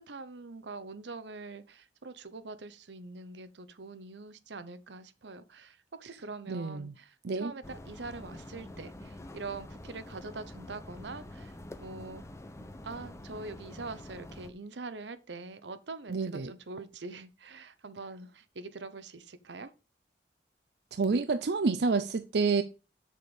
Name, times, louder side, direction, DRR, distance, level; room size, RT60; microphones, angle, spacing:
voice 1, 0.0-12.2 12.8-19.7, right 3 dB, 90° right, 0.9 m, -44 dB
voice 2, 6.5-6.9 7.2-7.5 16.1-16.5 20.9-22.6, right 4 dB, 65° right, 0.5 m, -28 dB
sound 1, 7.6-14.5, left 1 dB, 15° left, 0.7 m, -46 dB
7.1 x 6.6 x 4.9 m
head